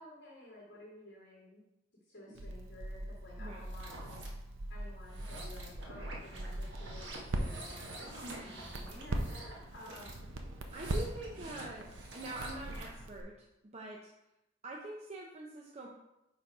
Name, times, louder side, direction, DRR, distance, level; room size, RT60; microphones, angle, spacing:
voice 1, 0.0-1.6 2.1-4.2 4.7-10.3 12.6-12.8, left 1 dB, 60° left, -7 dB, 2.0 m, -53 dB
Crackle, 2.3-13.2, right 1 dB, 90° right, 0.7 m, -41 dB
sound 1, 3.6-4.3 5.0-13.0, right 2 dB, 65° right, 1.3 m, -48 dB
voice 2, 8.2-8.6 10.7-13.4 13.7-14.1 14.6-15.9, right 2 dB, 35° right, -1 dB, 0.6 m, -44 dB
5.2 x 4.6 x 4.7 m, 0.91 s
head